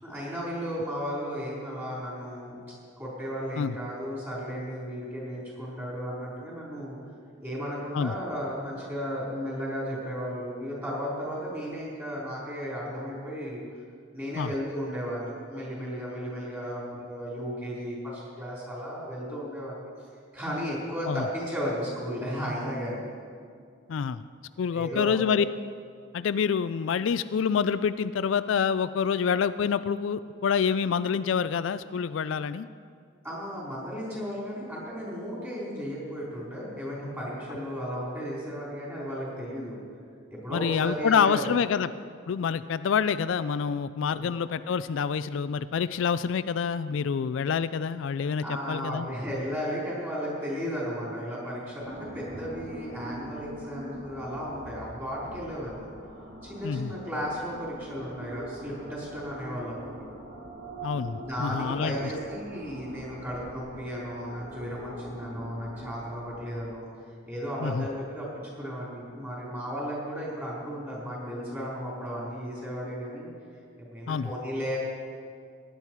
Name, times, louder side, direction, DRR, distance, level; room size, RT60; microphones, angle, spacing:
voice 1, 0.0-2.6 3.0-7.0 7.4-13.6 14.1-19.9 20.3-23.0 24.7-25.2 33.2-39.8 40.3-41.5 44.0-44.3 48.4-55.9 56.4-60.1 61.1-66.9 67.3-73.3 73.8-74.8, equal, 10° right, -6 dB, 4.2 m, -34 dB
voice 2, 23.9-24.2 24.6-25.4 26.1-32.7 40.5-41.9 42.3-49.1 56.6-56.9 60.8-62.0 67.6-67.9 74.1-74.3, left 6 dB, 75° left, 14 dB, 0.4 m, -27 dB
sound 1, 51.8-66.6, right 1 dB, 65° right, 3.2 m, -43 dB
18.0 x 10.0 x 4.6 m, 2.1 s
head